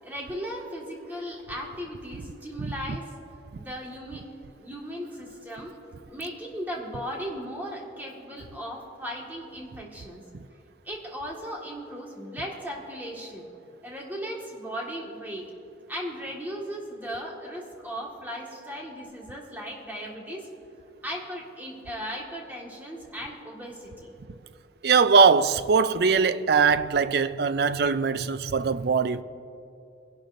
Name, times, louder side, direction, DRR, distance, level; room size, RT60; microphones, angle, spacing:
voice 1, 0.0-3.2 3.6-4.2 4.6-5.7 6.1-10.2 10.9-13.5 13.8-15.5 15.9-20.5 21.0-24.1, equal, 10° right, 1.8 m, -37 dB
voice 2, 24.8-29.2, right 5 dB, 60° right, 0.4 m, -21 dB
22.0 x 11.5 x 2.6 m
head